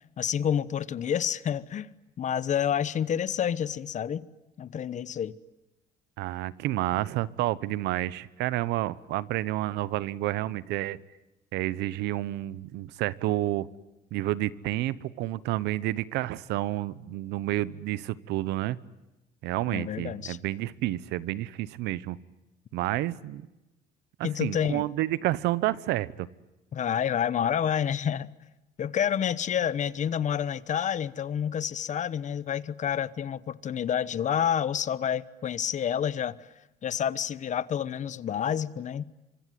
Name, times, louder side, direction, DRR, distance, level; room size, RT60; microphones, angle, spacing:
voice 1, 0.2-4.2 4.6-5.3 19.7-20.4 24.2-24.8 26.7-28.3 28.8-36.4 36.8-39.0, left 9 dB, 45° left, 1.1 m, -29 dB
voice 2, 6.2-11.0 11.5-13.7 14.1-18.8 19.4-22.2 22.7-23.5 24.2-26.3, right 16 dB, 90° right, 1.0 m, -30 dB
25.0 x 25.0 x 9.4 m
cardioid pair, 110°, 17 cm